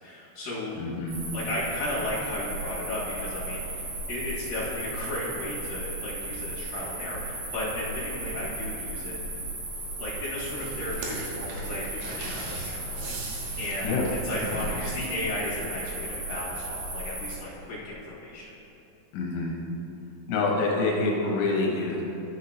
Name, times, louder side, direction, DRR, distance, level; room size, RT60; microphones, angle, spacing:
voice 1, 0.0-0.8 1.3-9.2 10.0-13.9 14.2-18.5, left 1 dB, 55° left, -9 dB, 2.8 m, -34 dB
voice 2, 0.8-1.2 13.8-14.1 19.1-19.6 20.3-22.0, left 3 dB, 75° left, -2 dB, 3.0 m, -26 dB
sound 1, 1.1-17.3, right 2 dB, 60° right, 3.4 m, -36 dB
sound 2, 10.4-15.6, right 2 dB, 80° right, 3.4 m, -40 dB
12.5 x 5.8 x 2.9 m, 2.8 s
omnidirectional pair, 5.5 m